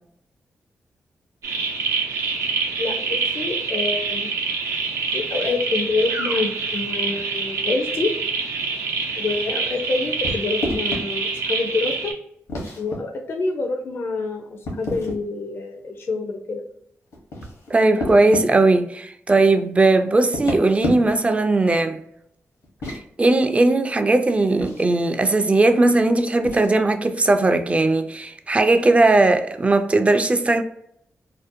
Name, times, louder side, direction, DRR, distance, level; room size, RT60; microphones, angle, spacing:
sound 1, 1.4-12.1, right 4 dB, 80° right, 0.6 m, -26 dB
voice 1, 2.8-4.3 5.1-8.1 9.2-12.1 12.8-16.6, left 3 dB, 55° left, 0.4 m, -26 dB
sound 2, 10.2-11.0 12.5-13.0 14.6-15.2 17.1-18.5 20.2-21.3 22.6-23.0 24.6-24.9 26.4-26.7, left 1 dB, 80° left, 0.9 m, -29 dB
voice 2, 17.7-22.0 22.9-30.6, right 2 dB, 25° right, 0.3 m, -18 dB
2.6 x 2.1 x 2.5 m
cardioid pair, 80°, 5 cm